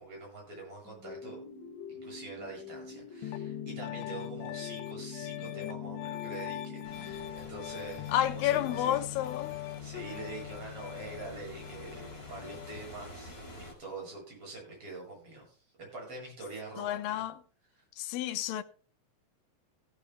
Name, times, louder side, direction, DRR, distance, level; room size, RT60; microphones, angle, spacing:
voice 1, 0.0-1.4 1.9-9.0 9.8-17.2 17.8-17.9, right 3 dB, 30° right, 8.5 m, -45 dB
sound 1, 0.8-8.0, left 4 dB, 40° left, 4.3 m, -46 dB
Piano, 3.2-12.9, left 15 dB, 90° left, 3.1 m, -41 dB
sound 2, 6.8-13.7, left 1 dB, 15° left, 3.7 m, -49 dB
voice 2, 8.1-9.5 9.9-10.1 16.8-17.4 18.0-18.6, left 12 dB, 70° left, 2.3 m, -30 dB
16.0 x 14.0 x 2.2 m
omnidirectional pair, 5.0 m